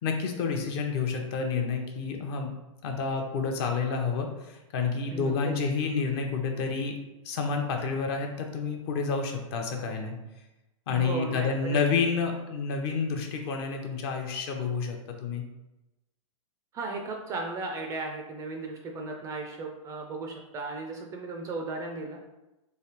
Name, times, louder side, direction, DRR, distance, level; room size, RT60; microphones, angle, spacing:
voice 1, 0.0-2.5 2.8-6.9 7.2-10.2 10.9-15.4, left 5 dB, 45° left, 3 dB, 0.7 m, -29 dB
voice 2, 5.1-5.5 10.9-11.8 16.7-22.2, right 3 dB, 20° right, 2 dB, 0.3 m, -36 dB
3.2 x 3.2 x 2.9 m, 1.0 s
hypercardioid pair, 135°, 18 cm